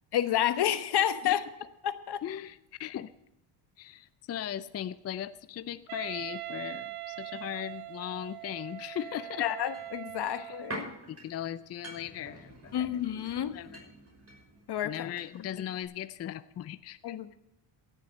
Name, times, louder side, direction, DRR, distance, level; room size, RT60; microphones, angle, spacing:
voice 1, 0.1-1.5 1.8-2.2 9.4-10.9 12.7-13.6 14.7-15.1 17.0-17.4, left 11 dB, 50° left, 11 dB, 1.2 m, -29 dB
voice 2, 2.2-3.1 3.8-9.5 10.3-10.6 11.1-12.9 13.5-13.9 14.8-17.2, left 11 dB, 30° left, 13 dB, 0.5 m, -38 dB
Wind instrument woodwind instrument, 5.9-10.9, right 16 dB, 75° right, 0.8 m, -42 dB
sound 1, 9.7-15.6 15.8-15.9, right 1 dB, 30° right, 5.8 m, -47 dB
16.5 x 7.6 x 6.6 m, 0.87 s
supercardioid pair, 80°, 50 cm